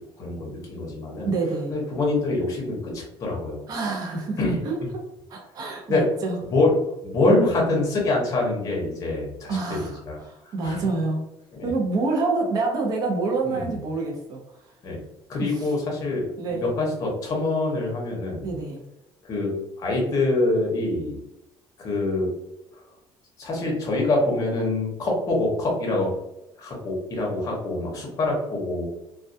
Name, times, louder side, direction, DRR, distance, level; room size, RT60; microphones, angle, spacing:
voice 1, 0.2-1.3 1.7-3.6 4.4-4.6 5.9-6.0 6.5-6.7 7.0-10.9 11.5-11.7 13.4-13.8 14.8-15.0 15.3-18.5 19.2-19.5 19.8-21.2 21.8-22.3 23.4-26.1 26.6-28.8, left 2 dB, 35° left, -2 dB, 0.7 m, -25 dB
voice 2, 1.2-1.7 3.7-4.4 4.7-4.8 5.3-6.4 7.3-7.4 9.5-11.3 11.6-14.4 16.4-16.7 18.4-18.8, right 3 dB, 40° right, 1 dB, 0.5 m, -27 dB
2.2 x 2.2 x 2.6 m, 0.89 s
cardioid pair, 180°, 10 cm